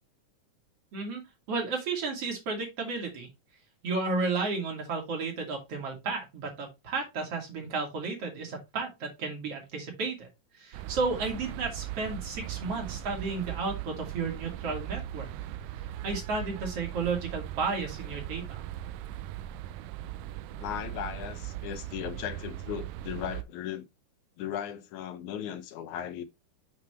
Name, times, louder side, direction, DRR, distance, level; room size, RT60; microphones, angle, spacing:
voice 1, 1.5-3.3 3.8-10.3 10.5-15.3 16.0-18.6, right 4 dB, 50° right, 3.3 m, -33 dB
sound 1, 10.7-23.4, right 12 dB, 90° right, 2.2 m, -39 dB
voice 2, 20.6-23.9 24.4-26.2, left 10 dB, 75° left, 2.2 m, -37 dB
7.5 x 5.9 x 3.2 m
omnidirectional pair, 3.7 m